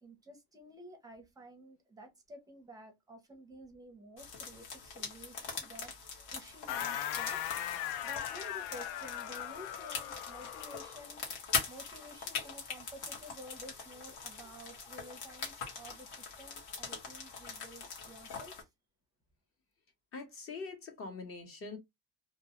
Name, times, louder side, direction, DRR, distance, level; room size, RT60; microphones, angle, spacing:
voice 1, 0.0-7.4 8.0-18.7, right 1 dB, 10° right, 0.6 m, -52 dB
sound 1, 4.2-18.6, left 5 dB, 70° left, 1.1 m, -42 dB
sound 2, 6.7-11.1, left 11 dB, 85° left, 0.5 m, -39 dB
voice 2, 20.1-21.8, left 4 dB, 35° left, 0.9 m, -43 dB
2.4 x 2.2 x 2.8 m
cardioid pair, 155°, 39 cm